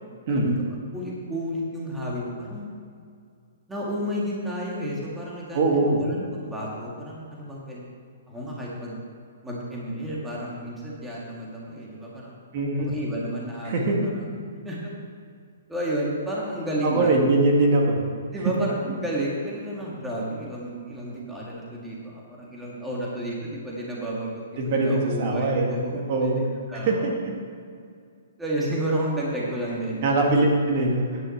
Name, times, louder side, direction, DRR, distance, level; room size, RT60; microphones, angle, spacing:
voice 1, 0.3-0.6 0.9-2.7 3.7-7.9 8.3-9.0 9.4-12.4 12.8-14.3 14.7-14.9 15.7-17.4 18.3-26.4 26.7-27.0 28.4-30.0, right 1 dB, 5° right, -5 dB, 1.8 m, -31 dB
voice 2, 5.5-6.0 12.5-12.9 13.7-14.1 16.8-18.0 24.6-26.4 26.7-27.3 30.0-31.2, right 2 dB, 45° right, 0 dB, 2.1 m, -22 dB
9.9 x 6.2 x 7.7 m, 2.2 s
hypercardioid pair, 150°, 0 cm